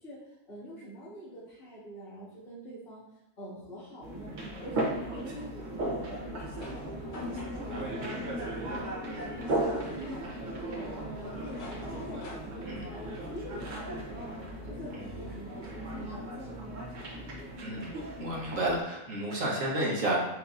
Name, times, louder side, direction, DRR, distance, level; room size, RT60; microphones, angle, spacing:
voice 1, 0.0-3.1 3.4-14.3 14.6-16.8, equal, 65° left, -11 dB, 2.2 m, -46 dB
sound 1, 4.0-18.8, right 1 dB, 45° right, 0.7 m, -36 dB
sound 2, 5.9-13.6, left 1 dB, 45° left, 0.7 m, -50 dB
voice 2, 17.6-17.9 18.2-20.2, right 1 dB, 60° right, -3 dB, 1.4 m, -31 dB
7.3 x 2.8 x 2.5 m, 0.92 s
omnidirectional pair, 1.6 m